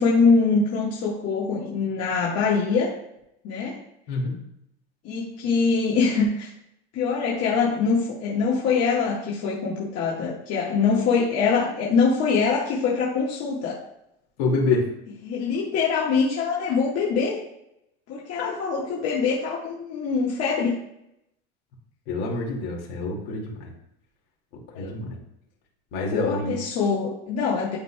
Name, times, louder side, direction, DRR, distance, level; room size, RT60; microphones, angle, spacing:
voice 1, 0.0-2.9 3.4-3.8 5.0-6.5 6.9-13.8 15.2-17.4 18.1-20.8 24.7-25.0 26.1-27.8, left 5 dB, 50° left, -5 dB, 1.6 m, -23 dB
voice 2, 4.1-4.4 14.4-14.9 18.4-18.5 22.1-23.7 24.7-25.2 25.9-26.6, left 3 dB, 65° left, -1 dB, 2.2 m, -26 dB
11.0 x 4.1 x 2.3 m, 0.80 s
supercardioid pair, 105°, 33 cm